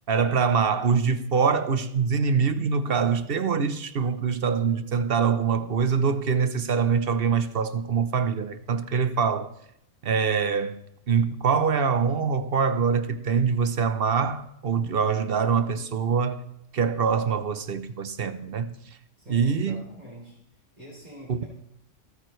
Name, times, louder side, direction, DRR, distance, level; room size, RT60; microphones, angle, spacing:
voice 1, 0.1-9.5 10.0-10.8 11.1-16.4 16.7-18.7 19.3-19.8 21.3-21.4, right 6 dB, 55° right, 0.9 m, -24 dB
voice 2, 19.2-20.4 20.8-21.5, equal, 35° right, 3.9 m, -44 dB
27.0 x 9.0 x 3.2 m
omnidirectional pair, 1.3 m